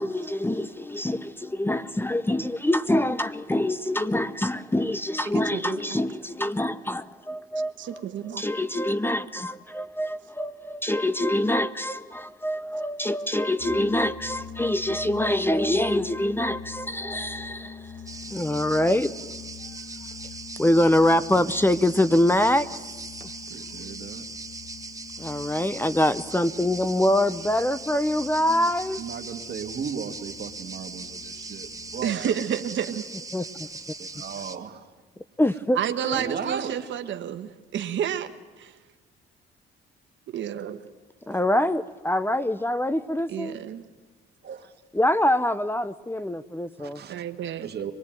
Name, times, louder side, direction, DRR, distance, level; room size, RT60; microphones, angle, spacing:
voice 1, 0.0-8.0 8.3-17.9 18.3-19.1 20.6-22.7 23.2-23.3 25.2-29.0 33.3-33.4 35.4-35.8 36.0-36.5 41.3-43.6 44.9-47.0, left 1 dB, 10° left, 0.7 m, -25 dB
voice 2, 5.5-6.0 7.8-8.4 32.0-33.0 35.7-38.3 38.6-38.7 40.3-40.8 43.3-43.8 47.1-47.7, right 9 dB, 70° right, 1.3 m, -30 dB
sound 1, 13.6-32.3, left 6 dB, 45° left, 7.2 m, -44 dB
sound 2, 18.1-34.6, right 3 dB, 15° right, 1.4 m, -40 dB
voice 3, 23.5-24.3 28.5-28.7 29.0-32.4 34.0-34.9 36.1-36.9 44.4-44.7 46.8-47.1 47.6-47.9, right 7 dB, 55° right, 2.1 m, -36 dB
24.5 x 19.5 x 9.1 m
cardioid pair, 90°, 20 cm